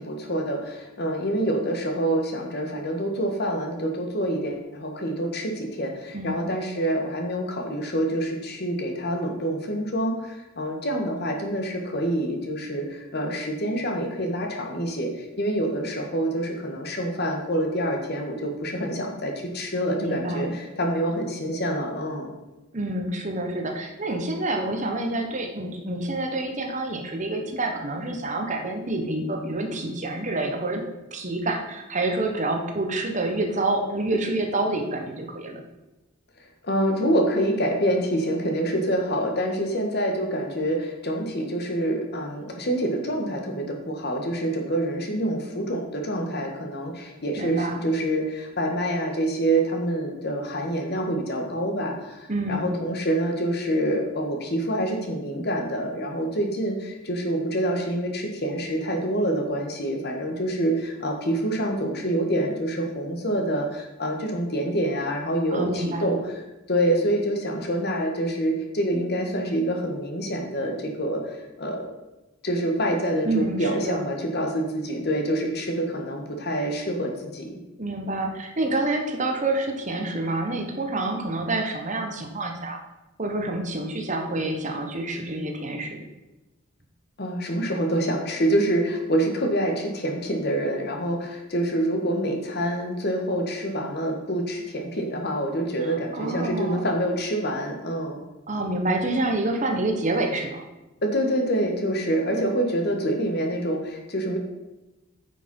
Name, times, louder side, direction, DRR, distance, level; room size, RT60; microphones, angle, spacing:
voice 1, 0.0-22.3 36.6-66.4 66.7-71.9 72.4-77.6 87.2-98.2 101.0-104.4, right 1 dB, 55° left, 3 dB, 1.7 m, -26 dB
voice 2, 20.0-20.6 22.7-30.8 31.1-35.6 47.4-47.8 52.3-52.7 65.5-66.1 73.2-74.1 77.8-82.8 83.2-86.0 95.8-96.8 98.5-100.6, right 2 dB, 40° right, 3 dB, 1.3 m, -28 dB
9.2 x 6.0 x 5.5 m, 1.0 s
head